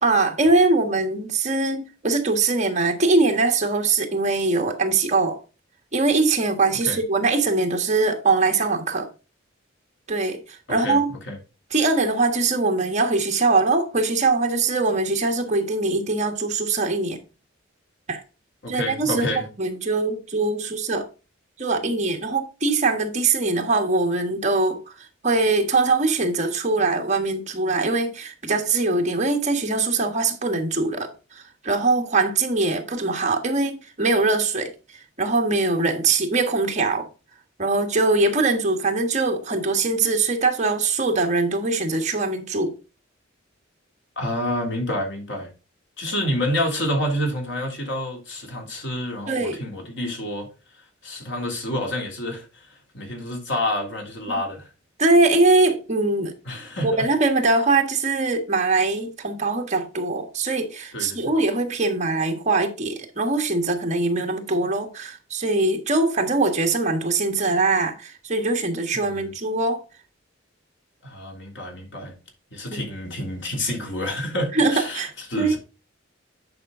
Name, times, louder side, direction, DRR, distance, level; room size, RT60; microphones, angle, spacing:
voice 1, 0.0-5.4 5.9-9.1 10.1-11.1 11.7-17.2 18.1-18.2 18.7-19.3 19.6-21.1 21.6-24.8 25.2-34.7 35.2-37.1 37.6-42.8 49.3-49.6 55.0-56.3 56.8-69.8 72.7-72.8 74.5-75.1 75.4-75.6, right 3 dB, 40° right, 1.5 m, -22 dB
voice 2, 18.6-19.5 44.1-45.5 46.0-50.5 51.0-54.7 56.4-57.1 60.9-61.3 68.9-69.3 71.0-72.1 72.5-75.6, left 1 dB, 65° left, 3.3 m, -28 dB
9.7 x 5.2 x 3.8 m
head